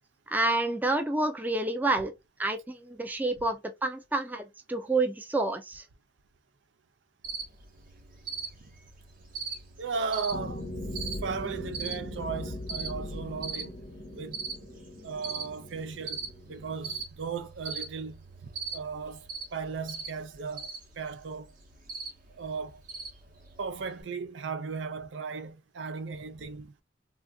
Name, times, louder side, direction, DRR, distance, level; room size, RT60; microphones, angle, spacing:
voice 1, 0.3-2.1 2.4-5.8, right 2 dB, 10° right, 0.4 m, -29 dB
Cricket, 7.2-24.0, right 5 dB, 50° right, 0.8 m, -41 dB
voice 2, 9.8-10.7 11.2-13.8 14.1-14.4 15.0-21.5 22.4-22.8 23.6-26.7, right 5 dB, 85° right, 0.5 m, -36 dB
sound 1, 10.3-17.0, left 1 dB, 80° left, 0.8 m, -40 dB
3.4 x 2.3 x 2.3 m
head